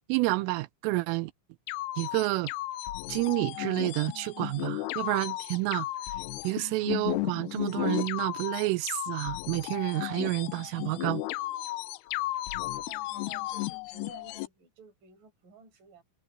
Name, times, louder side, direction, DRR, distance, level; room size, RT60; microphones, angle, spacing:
voice 1, 0.1-1.3 2.0-2.5 3.1-5.9 6.4-11.2, right 21 dB, 85° right, 3.3 m, -29 dB
sound 1, 1.7-14.5, left 17 dB, 85° left, 2.3 m, -34 dB
voice 2, 12.8-16.0, right 6 dB, 45° right, 6.8 m, -54 dB
omnidirectional pair, 5.7 m